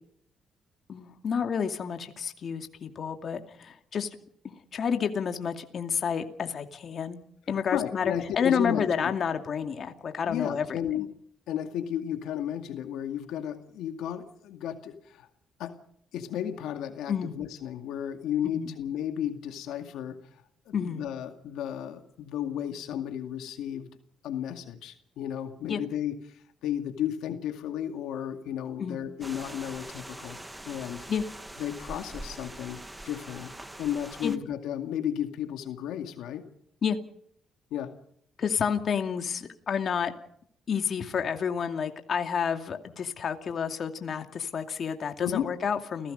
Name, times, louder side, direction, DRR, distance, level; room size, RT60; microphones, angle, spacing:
voice 1, 0.9-4.1 4.4-7.2 7.5-11.0 17.1-17.3 18.4-18.7 20.7-21.0 25.7-25.8 28.8-29.0 31.1-31.2 34.2-34.3 36.8-37.0 38.4-40.1 40.7-46.1, left 7 dB, 55° left, 6 dB, 2.4 m, -30 dB
voice 2, 7.5-9.1 10.3-11.1 11.5-15.3 15.6-15.8 16.1-20.2 20.7-23.9 24.2-30.4 30.6-31.1 31.6-32.8 33.1-33.5 33.8-36.5 37.7-37.9 45.2-45.5, left 10 dB, 90° left, 6 dB, 2.2 m, -33 dB
sound 1, 29.2-34.4, right 1 dB, 10° right, 1.8 m, -43 dB
30.0 x 17.0 x 5.4 m, 0.68 s
cardioid pair, 90°, 0 cm